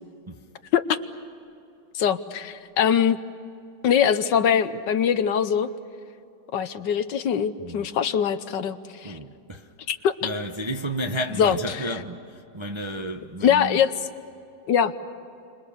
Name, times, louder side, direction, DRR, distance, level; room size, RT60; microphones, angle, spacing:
voice 1, 1.9-3.2 3.8-5.7 6.5-9.2 9.9-10.1 11.4-11.6 13.4-13.9 14.7-14.9, left 8 dB, 70° left, 1.5 m, -22 dB
voice 2, 9.0-9.7 10.2-13.8, equal, 25° right, 0.6 m, -32 dB
30.0 x 26.0 x 7.1 m
omnidirectional pair, 2.1 m